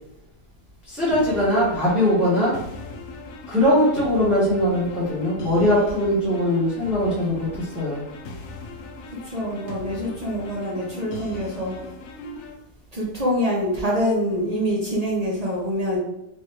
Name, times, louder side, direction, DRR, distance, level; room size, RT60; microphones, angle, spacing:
voice 1, 0.8-2.6 3.5-8.1, left 1 dB, ahead, -10 dB, 0.9 m, -21 dB
sound 1, 1.1-12.5, left 3 dB, 65° left, 0.7 m, -39 dB
voice 2, 9.1-11.8 12.9-16.0, equal, 60° right, -3 dB, 0.4 m, -25 dB
3.5 x 3.1 x 3.1 m, 0.85 s
omnidirectional pair, 1.7 m